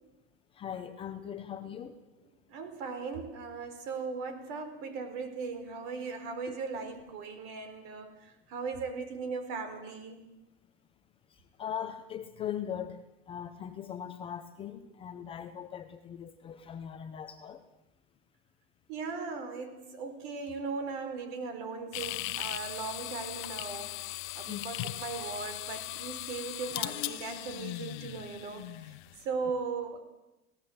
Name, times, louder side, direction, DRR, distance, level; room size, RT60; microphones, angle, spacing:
voice 1, 0.6-2.0 6.5-6.6 11.6-17.6 24.5-24.6, left 9 dB, 15° left, 8 dB, 0.8 m, -40 dB
voice 2, 2.5-10.2 18.9-24.0 24.3-29.0 29.2-30.0, right 4 dB, 50° right, 9 dB, 4.3 m, -38 dB
sound 1, 21.9-29.2, left 18 dB, 50° left, 0.8 m, -38 dB
27.5 x 18.0 x 7.8 m, 0.99 s
supercardioid pair, 170°, 32 cm